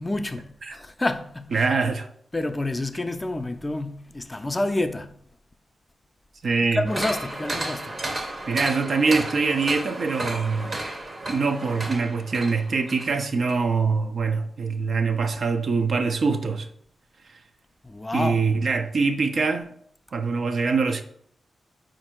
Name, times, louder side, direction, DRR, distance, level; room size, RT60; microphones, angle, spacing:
voice 1, 0.0-1.6 2.3-5.1 6.7-7.9 17.8-18.4, left 2 dB, 25° left, 0.5 m, -28 dB
voice 2, 1.5-2.1 6.4-6.8 8.5-10.7 11.3-16.7 18.1-19.7 20.1-21.0, right 4 dB, 65° right, 0.5 m, -24 dB
sound 1, 6.8-13.1 13.5-13.6, right 2 dB, 45° right, 0.8 m, -33 dB
4.4 x 2.6 x 4.3 m
cardioid pair, 50°, 0 cm